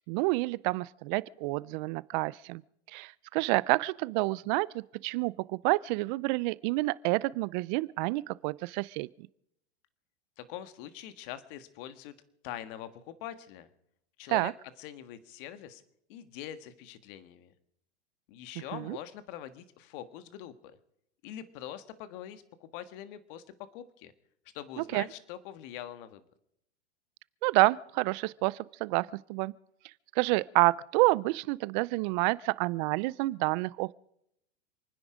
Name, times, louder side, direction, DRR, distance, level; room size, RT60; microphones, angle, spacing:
voice 1, 0.1-2.6 2.9-9.1 14.3-14.5 18.7-19.0 24.9-25.0 27.4-29.5 30.2-33.9, right 22 dB, 45° right, 0.5 m, -28 dB
voice 2, 10.5-12.1 12.4-13.7 14.2-14.5 14.8-15.8 16.1-17.5 18.3-20.8 21.2-23.4 23.7-24.1 24.5-26.2, left 11 dB, 50° left, 1.7 m, -43 dB
28.0 x 10.0 x 5.0 m
hypercardioid pair, 125°, 33 cm